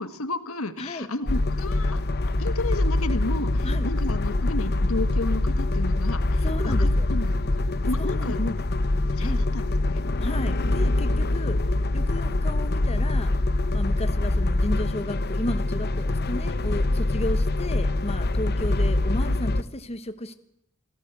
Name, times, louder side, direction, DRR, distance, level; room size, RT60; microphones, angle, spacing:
voice 1, 0.0-2.0 2.4-8.6 9.1-10.0, left 2 dB, 80° left, 12 dB, 1.8 m, -33 dB
sound 1, 1.3-19.6, left 2 dB, 50° left, 1.0 m, -24 dB
voice 2, 6.4-7.1 8.0-8.4 9.2-9.4 10.2-11.6 11.9-13.3 13.7-20.3, left 1 dB, 30° left, 11 dB, 1.2 m, -33 dB
27.0 x 17.0 x 8.3 m, 0.77 s
head